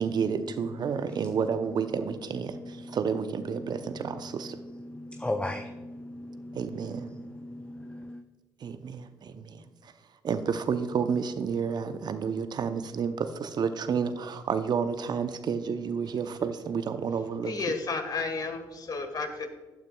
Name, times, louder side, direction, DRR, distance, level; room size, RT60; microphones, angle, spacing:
voice 1, 0.0-4.6 6.5-7.1 8.6-9.9 10.2-17.5, right 6 dB, 50° right, 10 dB, 0.7 m, -30 dB
voice 2, 4.7-8.2, left 1 dB, 10° left, 7 dB, 0.6 m, -37 dB
voice 3, 17.5-19.5, left 4 dB, 45° left, 7 dB, 1.5 m, -32 dB
14.5 x 9.3 x 2.3 m, 1.2 s
hypercardioid pair, 50°, 9 cm